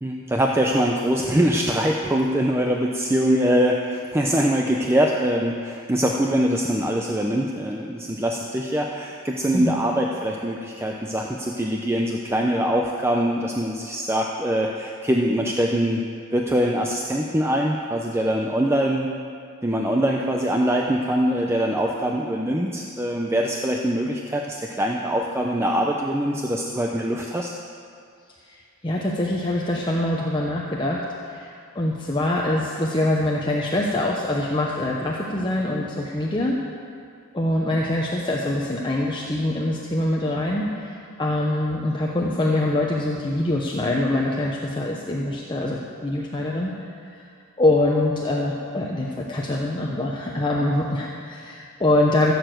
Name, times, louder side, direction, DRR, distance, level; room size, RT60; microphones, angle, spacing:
voice 1, 0.0-16.0 16.3-19.1 19.6-27.5, equal, 10° right, 0 dB, 0.6 m, -23 dB
voice 2, 28.8-36.5 37.3-46.7 47.2-47.3 47.6-52.3, left 1 dB, 20° left, -3 dB, 0.9 m, -24 dB
15.5 x 7.0 x 7.8 m, 2.3 s
head